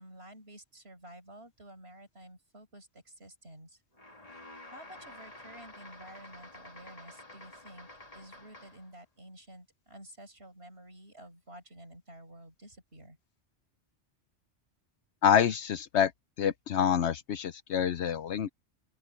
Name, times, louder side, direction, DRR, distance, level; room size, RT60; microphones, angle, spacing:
voice 1, 0.0-3.8 4.7-7.9 8.1-13.2, right 1 dB, 60° right, 6.2 m, -51 dB
sound 1, 3.9-8.9, left 2 dB, 30° left, 2.7 m, -50 dB
voice 2, 15.2-16.1 16.4-18.5, left 8 dB, 75° left, 1.0 m, -27 dB
open air
omnidirectional pair, 1.2 m